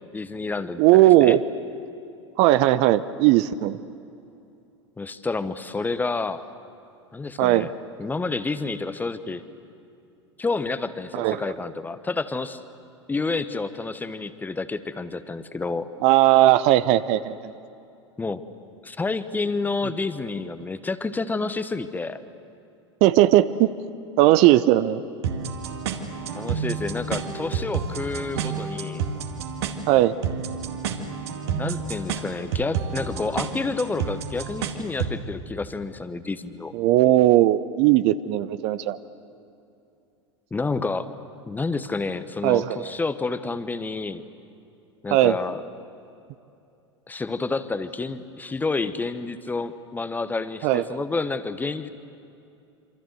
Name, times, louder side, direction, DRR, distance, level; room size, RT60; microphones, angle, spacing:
voice 1, 0.1-1.4 5.0-6.4 7.1-7.7 8.0-9.4 10.4-12.6 13.1-15.9 18.2-18.4 18.8-22.2 26.3-29.0 31.5-36.7 40.5-41.1 41.5-44.2 45.0-45.6 47.1-51.9, left 3 dB, 10° left, 12 dB, 1.1 m, -29 dB
voice 2, 0.8-1.4 2.4-3.8 7.4-7.7 11.1-11.4 16.0-17.5 23.0-23.7 24.2-25.0 29.9-30.1 36.7-39.0 42.4-42.9 45.1-45.4 50.6-51.0, right 15 dB, 45° right, 14 dB, 0.8 m, -18 dB
sound 1, 25.2-35.2, right 6 dB, 60° right, 2.3 m, -30 dB
27.5 x 26.0 x 7.8 m, 2.7 s
figure-of-eight pair, 85°, 15 cm